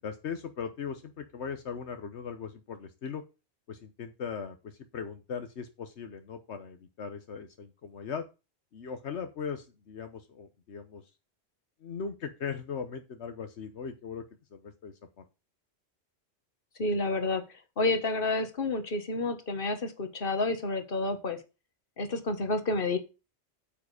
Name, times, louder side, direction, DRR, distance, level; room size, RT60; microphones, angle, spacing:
voice 1, 0.0-3.2 3.7-8.2 8.7-11.0 11.8-14.2 14.5-14.9, left 6 dB, 80° left, 8 dB, 1.3 m, -39 dB
voice 2, 16.8-17.4 17.8-21.4 22.0-23.0, left 2 dB, 55° left, 8 dB, 1.7 m, -29 dB
8.7 x 7.4 x 4.9 m, 0.29 s
omnidirectional pair, 1.1 m